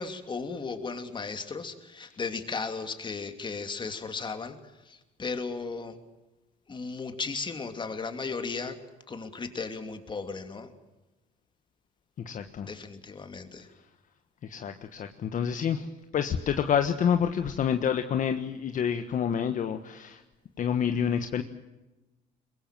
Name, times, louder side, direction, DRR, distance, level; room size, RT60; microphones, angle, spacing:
voice 1, 0.0-4.6 4.9-6.0 6.7-8.8 9.1-10.7 12.6-13.7, left 4 dB, 30° left, 7 dB, 2.9 m, -35 dB
voice 2, 12.2-12.8 13.7-13.8 14.4-20.2 20.6-21.4, left 8 dB, 50° left, 7 dB, 1.4 m, -28 dB
23.0 x 21.5 x 7.7 m, 1.1 s
cardioid pair, 110°, 17 cm